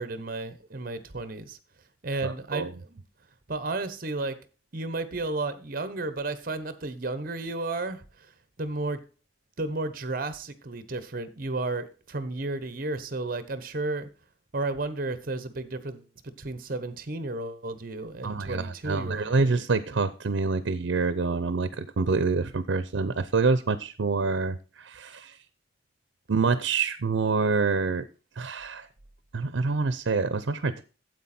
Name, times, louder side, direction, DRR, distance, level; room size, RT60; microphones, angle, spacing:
voice 1, 0.0-1.6 2.0-3.0 3.5-4.4 4.7-8.3 8.6-9.0 9.6-14.1 14.5-19.5, right 2 dB, 50° right, 13 dB, 1.0 m, -33 dB
voice 2, 2.2-2.7 18.2-25.4 26.3-28.0 28.4-28.9 29.3-30.8, right 4 dB, 90° right, 13 dB, 0.6 m, -26 dB
9.3 x 7.9 x 4.3 m, 0.34 s
head